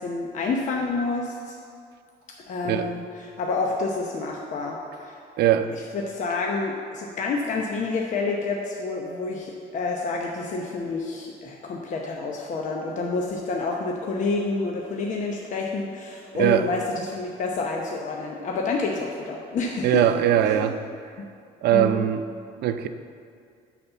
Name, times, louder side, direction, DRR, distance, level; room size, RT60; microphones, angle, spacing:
voice 1, 0.0-1.6 2.5-5.2 5.9-20.0 20.4-20.7 21.2-21.3 21.7-22.0, left 3 dB, 45° left, -1 dB, 0.9 m, -28 dB
voice 2, 5.4-5.7 16.4-16.7 19.8-20.8 21.6-22.2 22.6-22.9, right 11 dB, 70° right, 9 dB, 0.5 m, -20 dB
9.7 x 4.2 x 6.9 m, 2.3 s
cardioid pair, 110°, 17 cm